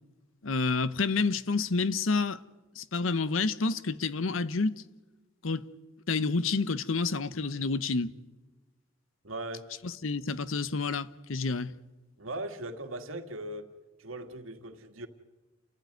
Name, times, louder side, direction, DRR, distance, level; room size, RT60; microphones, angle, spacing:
voice 1, 0.4-2.4 2.8-4.8 5.4-5.6 6.1-8.1 9.8-11.7, left 4 dB, 80° left, 0.9 m, -29 dB
voice 2, 9.2-9.7 12.2-13.7 14.0-15.1, right 1 dB, 90° right, 2.0 m, -39 dB
29.0 x 15.0 x 9.3 m
head